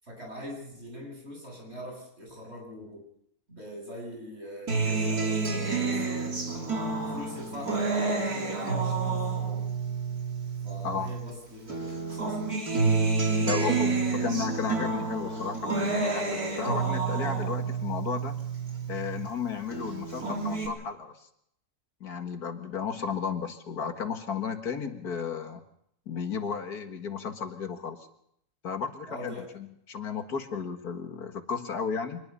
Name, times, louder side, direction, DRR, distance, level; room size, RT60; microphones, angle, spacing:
voice 1, 0.0-3.0 3.5-6.0 7.1-9.7 10.6-12.4 13.2-13.8 29.1-29.5, equal, 45° right, 0 dB, 8.0 m, -42 dB
Acoustic guitar, 4.7-11.3 11.7-19.3 19.7-20.7, right 4 dB, 85° right, 3.8 m, -29 dB
voice 2, 13.4-13.9 14.1-18.4 18.9-21.1 22.0-25.6 26.1-28.1 28.6-32.2, left 6 dB, 90° left, 7 dB, 2.3 m, -34 dB
25.0 x 20.5 x 5.6 m, 0.72 s
omnidirectional pair, 1.6 m